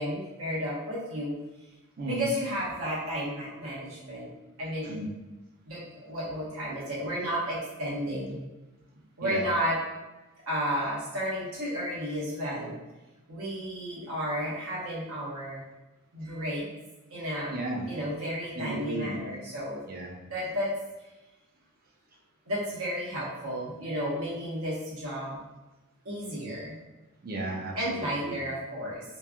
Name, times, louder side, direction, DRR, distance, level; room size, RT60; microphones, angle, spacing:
voice 1, 0.0-1.3 2.1-4.3 4.6-4.9 5.7-8.4 9.2-9.8 10.5-12.7 13.3-15.6 16.1-16.6 17.1-17.5 17.8-19.8 20.3-20.7 22.5-25.4 26.0-26.8 27.8-29.0, equal, 80° right, -6 dB, 1.1 m, -32 dB
voice 2, 2.0-2.3 4.8-5.2 9.2-9.5 16.2-16.4 17.5-17.9 18.5-19.2 19.9-20.1 27.2-28.3, right 2 dB, 45° right, -1 dB, 0.5 m, -35 dB
3.1 x 2.4 x 2.3 m, 1.1 s
head